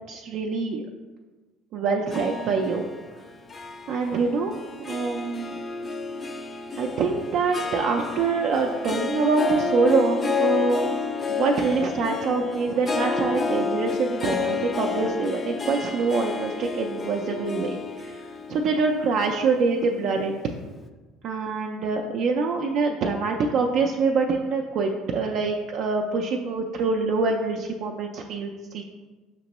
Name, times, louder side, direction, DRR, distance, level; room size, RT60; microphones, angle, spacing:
voice 1, 0.1-0.8 1.7-2.9 3.9-4.5 4.9-5.6 6.8-11.0 11.3-18.2 18.5-20.3 21.2-28.8, right 4 dB, 60° right, 2 dB, 0.3 m, -25 dB
Harp, 2.1-20.5, left 4 dB, 30° left, 0.3 m, -30 dB
5.0 x 3.0 x 2.9 m, 1.3 s
supercardioid pair, 95°, 0 cm